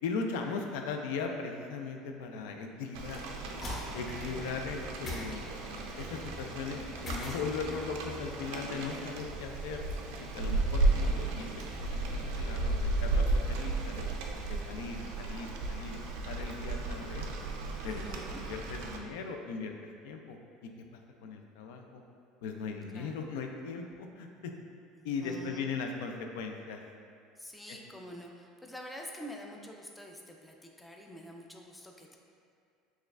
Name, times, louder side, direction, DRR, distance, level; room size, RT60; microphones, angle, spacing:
voice 1, 0.0-3.2 3.9-5.5 6.0-9.8 10.2-14.1 14.5-16.0 16.2-17.3 17.8-18.0 18.4-19.7 20.0-20.4 21.2-22.0 22.4-24.5 25.0-26.8 27.7-27.8, left 5 dB, 90° left, 3 dB, 0.4 m, -38 dB
Rain, 2.9-19.0, right 2 dB, 85° right, 0.4 m, -34 dB
sound 1, 3.5-4.3 5.0-6.0 7.0-7.9, left 1 dB, 30° left, 0.8 m, -40 dB
voice 2, 17.8-18.4 22.9-23.2 24.9-25.6 27.4-32.2, equal, 5° left, 1 dB, 0.3 m, -47 dB
6.2 x 2.3 x 2.3 m, 2.3 s
cardioid pair, 145°, 0 cm